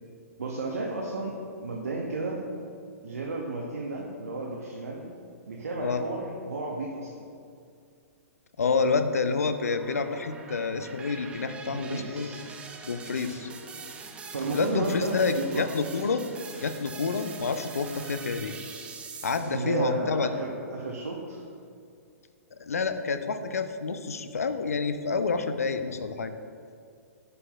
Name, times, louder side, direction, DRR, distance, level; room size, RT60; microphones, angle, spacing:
voice 1, 0.4-2.4 3.0-5.1 5.5-7.2 11.7-12.5 14.3-15.7 19.5-21.4, right 2 dB, 70° right, -1 dB, 0.7 m, -33 dB
voice 2, 8.6-12.3 12.8-13.5 14.5-16.2 16.5-18.5 19.2-20.3 22.6-26.3, left 4 dB, 70° left, 10 dB, 0.5 m, -28 dB
sound 1, 8.6-19.8, right 4 dB, 15° right, 0.5 m, -44 dB
11.0 x 5.6 x 2.3 m, 2.4 s
figure-of-eight pair, 110°, 8 cm